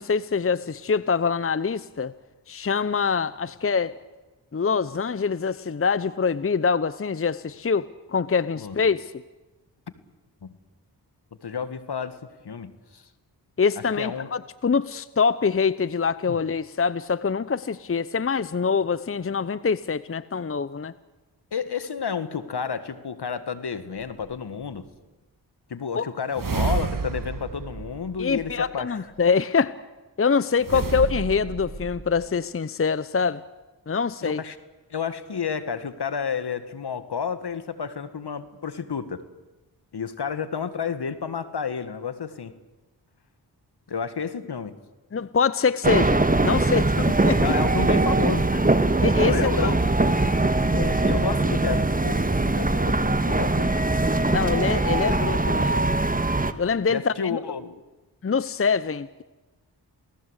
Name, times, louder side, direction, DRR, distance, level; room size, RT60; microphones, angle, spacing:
voice 1, 0.0-2.1 2.5-3.9 4.5-9.1 13.6-20.9 26.0-26.1 28.2-29.7 30.2-33.4 33.9-34.4 45.1-47.6 49.0-49.7 50.2-50.4 50.7-51.2 54.3-55.8 56.6-57.4 58.2-59.2, left 5 dB, 30° left, 17 dB, 0.8 m, -25 dB
voice 2, 11.4-12.2 12.4-13.0 14.0-14.3 16.3-16.4 21.5-24.9 25.7-29.0 30.7-30.8 34.2-34.6 34.9-39.2 39.9-42.5 43.9-44.8 47.4-48.7 49.2-49.8 51.0-53.8 56.9-57.8, left 6 dB, 65° left, 12 dB, 1.9 m, -31 dB
sound 1, 24.0-24.1 26.3-28.8 30.6-32.3, right 5 dB, 50° right, 1.8 m, -30 dB
sound 2, 45.8-56.5, right 2 dB, 20° right, 1.6 m, -22 dB
28.5 x 18.5 x 8.3 m, 1.1 s
cardioid pair, 45°, 42 cm